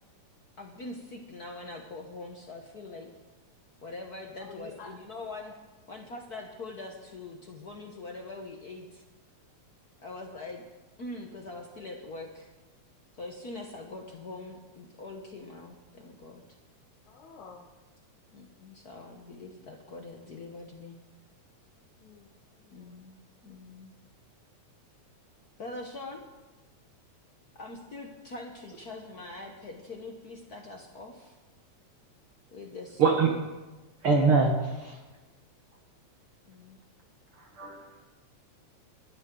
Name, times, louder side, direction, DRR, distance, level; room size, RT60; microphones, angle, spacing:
voice 1, 0.6-3.1 3.8-5.5 5.9-9.0 10.0-10.6 11.0-12.5 13.2-16.4 18.3-21.0 22.7-23.2 23.4-23.9 25.6-26.2 27.6-31.3 32.5-33.0 36.5-36.8, left 2 dB, 60° left, 2 dB, 1.0 m, -43 dB
voice 2, 4.4-4.9 17.1-17.6 21.9-23.0, left 5 dB, 80° left, -2 dB, 2.7 m, -49 dB
voice 3, 33.0-33.3 34.0-35.0 37.3-38.0, right 4 dB, 55° right, 1 dB, 1.8 m, -24 dB
21.0 x 12.5 x 3.8 m, 1.2 s
omnidirectional pair, 3.3 m